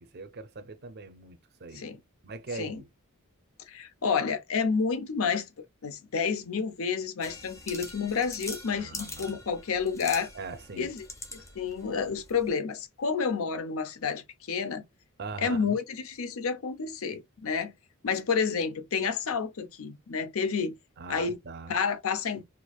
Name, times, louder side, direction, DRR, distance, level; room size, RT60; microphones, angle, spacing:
voice 1, 0.0-1.9 2.2-2.9 8.7-9.4 10.3-10.9 11.4-11.5 15.2-15.8 21.0-21.8, right 3 dB, 45° right, 0.5 m, -41 dB
voice 2, 3.7-5.5 5.8-10.3 10.8-11.1 11.3-14.8 15.4-17.7 18.0-20.7 21.1-21.4 21.7-22.5, left 5 dB, 65° left, 0.6 m, -30 dB
sound 1, 7.2-12.5, left 2 dB, 15° left, 0.7 m, -43 dB
4.4 x 2.5 x 2.3 m
head